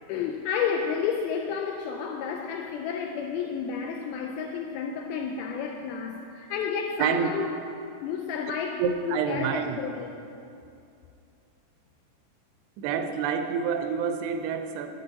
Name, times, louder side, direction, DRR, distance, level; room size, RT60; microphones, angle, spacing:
voice 1, 0.1-7.5 8.0-10.1, left 6 dB, 85° left, 2.2 m, -31 dB
voice 2, 7.0-7.4 8.8-9.9 12.8-14.9, right 6 dB, 90° right, 2.8 m, -28 dB
9.7 x 8.3 x 4.0 m
omnidirectional pair, 4.7 m